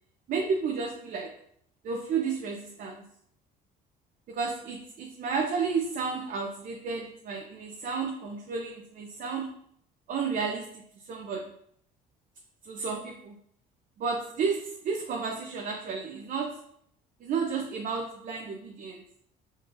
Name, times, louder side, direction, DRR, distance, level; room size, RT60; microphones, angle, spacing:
voice 1, 0.3-1.4 1.8-3.0 4.3-9.5 10.1-10.8 11.1-11.5 12.6-13.4 14.0-16.6 17.2-19.0, right 5 dB, 55° right, 1 dB, 0.7 m, -32 dB
5.1 x 3.8 x 2.6 m, 0.66 s
cardioid pair, 110°, 17 cm